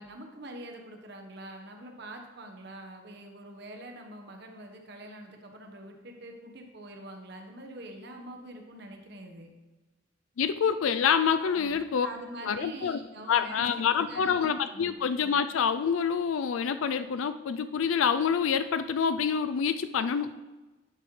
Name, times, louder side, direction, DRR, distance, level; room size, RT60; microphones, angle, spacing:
voice 1, 0.0-9.5 11.4-14.5 14.7-15.0, right 1 dB, 55° right, 3 dB, 1.2 m, -45 dB
voice 2, 10.4-12.1 12.4-13.0 13.3-20.4, left 7 dB, 85° left, 11 dB, 0.4 m, -27 dB
11.0 x 7.6 x 3.2 m, 1.2 s
head